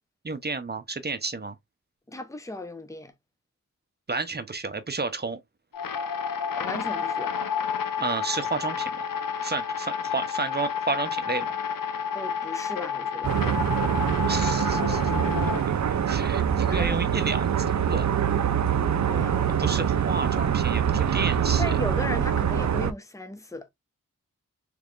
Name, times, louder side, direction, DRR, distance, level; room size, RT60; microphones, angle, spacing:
voice 1, 0.2-1.6 4.1-5.4 8.0-9.1 9.4-11.5 14.3-15.1 16.1-18.1 19.4-21.7, right 3 dB, 30° right, 0.8 m, -31 dB
voice 2, 2.1-3.1 6.6-7.4 12.1-13.4 16.5-17.0 19.1-19.6 21.6-23.7, left 1 dB, 10° left, 0.8 m, -36 dB
sound 1, 5.7-15.6, left 7 dB, 80° left, 0.7 m, -30 dB
sound 2, 13.2-22.9, right 8 dB, 55° right, 0.5 m, -24 dB
3.4 x 3.3 x 2.4 m
cardioid pair, 40°, 33 cm